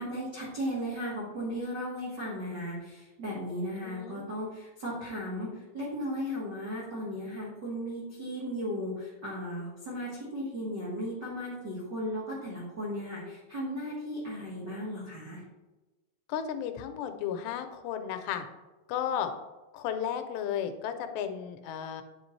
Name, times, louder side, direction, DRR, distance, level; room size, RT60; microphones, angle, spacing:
voice 1, 0.0-15.4, equal, 70° right, -7 dB, 1.0 m, -36 dB
voice 2, 3.8-4.2 16.3-18.5 18.9-19.3 19.7-22.0, left 9 dB, 85° left, 8 dB, 2.8 m, -34 dB
9.5 x 5.8 x 3.2 m, 1.1 s
omnidirectional pair, 4.9 m